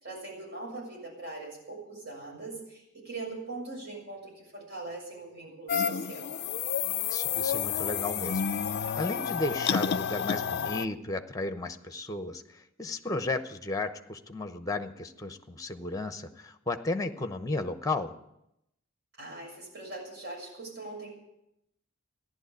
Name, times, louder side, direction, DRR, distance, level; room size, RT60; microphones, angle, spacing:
voice 1, 0.0-6.4 19.2-21.1, right 2 dB, 55° right, -1 dB, 6.8 m, -41 dB
sound 1, 5.7-10.8, left 7 dB, 50° left, 0.5 m, -30 dB
voice 2, 7.1-8.5 9.0-18.1, left 2 dB, 15° left, 9 dB, 0.9 m, -34 dB
15.0 x 11.5 x 8.3 m, 0.82 s
head